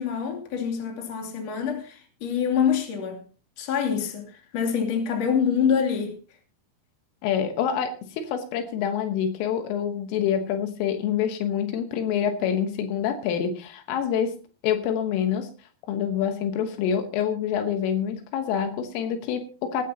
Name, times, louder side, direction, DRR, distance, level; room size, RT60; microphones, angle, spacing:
voice 1, 0.0-3.2 3.6-6.2, left 7 dB, 40° left, 3.1 m, -26 dB
voice 2, 7.2-14.4 14.6-15.5 15.9-19.8, left 8 dB, 80° left, 3.8 m, -26 dB
19.5 x 13.0 x 2.8 m
omnidirectional pair, 5.8 m